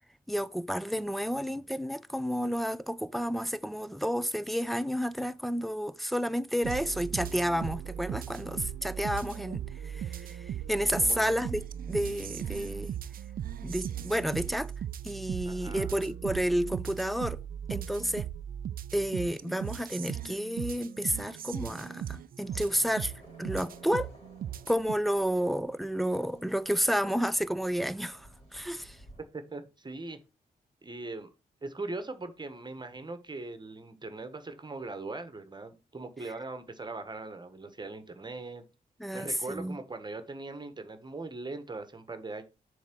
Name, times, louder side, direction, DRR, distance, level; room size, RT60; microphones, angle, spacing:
voice 1, 0.3-12.9 13.6-14.7 15.0-17.4 17.7-18.3 18.9-23.1 23.4-24.1 24.7-29.0 39.0-39.8, equal, ahead, 0.5 m, -31 dB
sound 1, 6.6-24.9, right 10 dB, 60° right, 0.4 m, -38 dB
voice 2, 11.0-11.4 15.5-16.1 29.3-30.2 30.8-31.3 31.6-38.6 39.1-42.4, right 3 dB, 25° right, 1.3 m, -40 dB
sound 2, 22.4-29.2, right 1 dB, 40° left, 3.3 m, -55 dB
7.2 x 3.5 x 6.1 m
cardioid pair, 75°, 16 cm